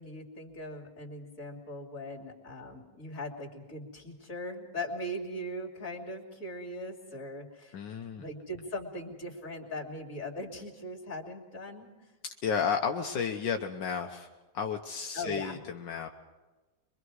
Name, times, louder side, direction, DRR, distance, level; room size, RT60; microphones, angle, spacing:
voice 1, 0.0-7.8 8.2-11.9 15.1-15.6, left 1 dB, 45° left, -1 dB, 3.1 m, -40 dB
voice 2, 7.7-8.3 12.2-14.3 14.5-16.1, left 6 dB, 75° left, 3 dB, 1.6 m, -32 dB
24.0 x 24.0 x 4.8 m, 1.2 s
omnidirectional pair, 2.0 m